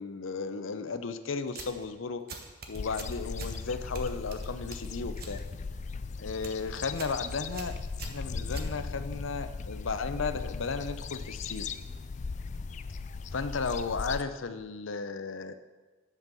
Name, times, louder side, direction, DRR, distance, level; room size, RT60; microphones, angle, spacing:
voice 1, 0.0-2.2 2.7-5.4 6.2-7.8 8.1-11.7 13.3-15.5, left 4 dB, 75° left, 10 dB, 0.6 m, -34 dB
sound 1, 1.5-1.9 2.3-3.6 3.9-5.4 5.7-6.0 6.3-6.6 7.0-7.2 7.5-9.1, right 4 dB, 50° right, 1.1 m, -44 dB
sound 2, 2.7-14.2, left 4 dB, 35° left, 0.3 m, -38 dB
11.0 x 5.4 x 6.8 m, 1.3 s
head